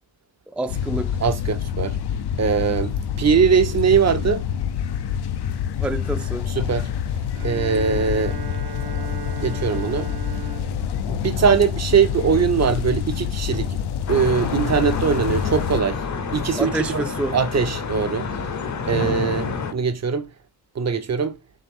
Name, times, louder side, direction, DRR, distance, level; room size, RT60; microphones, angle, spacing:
voice 1, 0.5-1.2 5.8-6.5 16.6-17.4, right 2 dB, 5° right, 0.4 m, -28 dB
sound 1, 0.7-15.8, left 8 dB, 80° left, 0.6 m, -27 dB
voice 2, 1.2-2.0 2.4-4.5 6.6-6.9 7.4-8.4 9.4-10.1 11.1-13.8 14.1-16.0 16.3-17.0 17.3-18.3 18.9-20.3 20.8-21.4, right 6 dB, 40° right, 0.6 m, -21 dB
Bowed string instrument, 7.3-12.1, right 7 dB, 75° right, 1.0 m, -37 dB
sound 2, 14.1-19.7, left 5 dB, 45° left, 0.8 m, -28 dB
4.6 x 3.3 x 3.5 m
wide cardioid pair, 105°, 39 cm